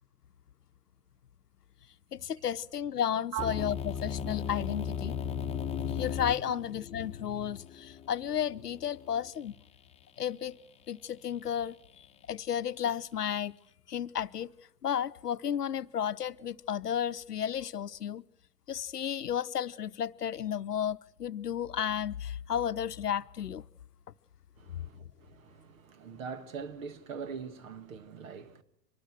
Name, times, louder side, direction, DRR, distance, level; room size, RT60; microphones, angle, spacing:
voice 1, 2.1-9.5 10.2-10.6 10.9-13.5 13.9-14.5 14.8-18.2 18.7-23.6 24.7-24.8, left 9 dB, 75° left, 0.8 m, -33 dB
voice 2, 3.3-3.7 6.5-6.6 24.6-28.6, right 7 dB, 55° right, 1.9 m, -42 dB
sound 1, 3.4-9.3, left 7 dB, 15° left, 1.2 m, -37 dB
25.0 x 19.5 x 7.7 m
figure-of-eight pair, 100°, 48 cm